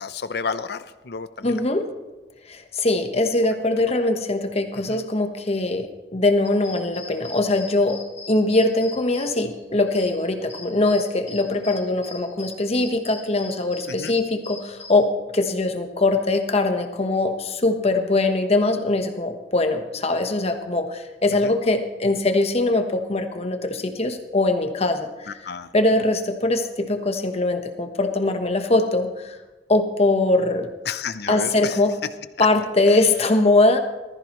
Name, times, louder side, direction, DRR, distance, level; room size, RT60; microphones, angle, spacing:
voice 1, 0.0-1.5 4.9-5.0 13.9-14.1 21.3-21.5 25.3-25.7 30.9-31.8 32.9-33.0, left 5 dB, 60° left, 12 dB, 0.7 m, -31 dB
voice 2, 1.4-1.8 2.5-8.0 8.3-25.4 25.7-29.3 29.7-30.7 31.3-31.9 32.4-33.8, left 2 dB, 35° left, 6 dB, 1.1 m, -22 dB
sound 1, 6.5-14.9, left 3 dB, 15° left, 2.4 m, -41 dB
19.5 x 14.0 x 3.1 m, 1.2 s
head